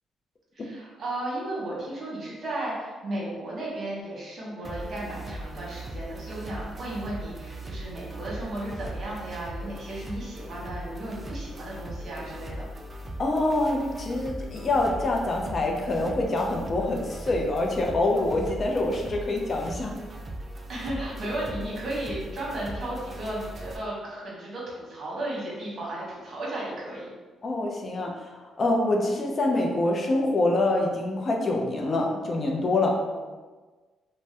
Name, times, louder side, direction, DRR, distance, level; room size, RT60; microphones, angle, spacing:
voice 1, 0.5-12.7 20.7-27.1 32.9-33.2, right 1 dB, 50° right, -5 dB, 1.1 m, -34 dB
sound 1, 4.6-23.8, right 1 dB, 30° right, 0.4 m, -39 dB
voice 2, 13.2-19.9 27.4-33.0, left 2 dB, 40° left, 0 dB, 0.4 m, -25 dB
2.6 x 2.1 x 3.3 m, 1.3 s
cardioid pair, 90°, 0 cm